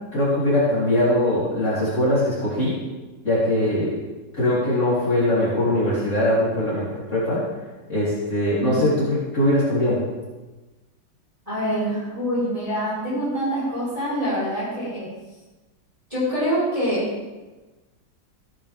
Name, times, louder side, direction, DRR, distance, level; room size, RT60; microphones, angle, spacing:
voice 1, 0.1-2.8 3.2-3.9 4.3-7.4 7.9-8.9 9.3-10.0, left 1 dB, 40° left, -9 dB, 3.2 m, -21 dB
voice 2, 11.5-15.1 16.1-17.0, equal, 15° right, -8 dB, 4.1 m, -25 dB
15.5 x 9.5 x 3.4 m, 1.2 s
omnidirectional pair, 2.0 m